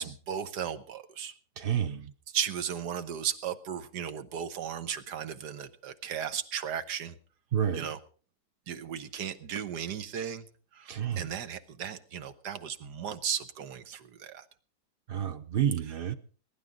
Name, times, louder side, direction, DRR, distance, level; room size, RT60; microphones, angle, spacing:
voice 1, 0.0-1.3 2.3-7.1 7.7-8.0 8.7-10.5 10.7-14.5 15.8-16.1, right 8 dB, 75° right, 1.6 m, -36 dB
voice 2, 1.6-2.0 7.5-7.9 10.9-11.3 15.1-16.1, right 9 dB, 55° right, 0.6 m, -29 dB
21.5 x 11.5 x 3.8 m
omnidirectional pair, 1.8 m